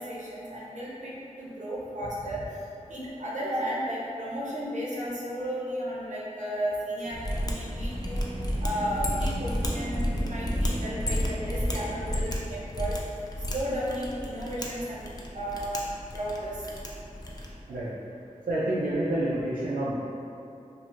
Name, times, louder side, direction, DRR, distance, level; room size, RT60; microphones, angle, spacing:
voice 1, 0.0-2.4 2.9-8.2 8.6-13.0 13.5-15.1 15.3-15.9 16.1-16.6, equal, 60° right, -7 dB, 0.7 m, -34 dB
sound 1, 7.0-12.3, equal, 55° left, 0.7 m, -39 dB
Mechanisms, 7.1-17.6, equal, 30° left, 0.4 m, -32 dB
voice 2, 18.5-19.9, right 1 dB, 85° right, -9 dB, 0.4 m, -28 dB
2.5 x 2.5 x 2.9 m, 2.7 s
wide cardioid pair, 60°, 14 cm